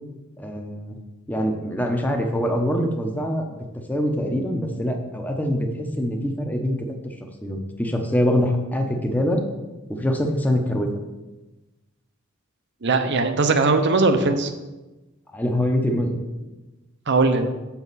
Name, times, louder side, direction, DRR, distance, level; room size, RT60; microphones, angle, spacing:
voice 1, 0.4-1.0 1.3-3.4 3.9-6.8 7.4-9.4 9.9-10.9 15.3-16.2, equal, 10° left, 3 dB, 0.9 m, -24 dB
voice 2, 12.8-14.5 17.1-17.5, right 3 dB, 60° right, 8 dB, 0.8 m, -19 dB
7.0 x 6.9 x 4.1 m, 1.1 s
head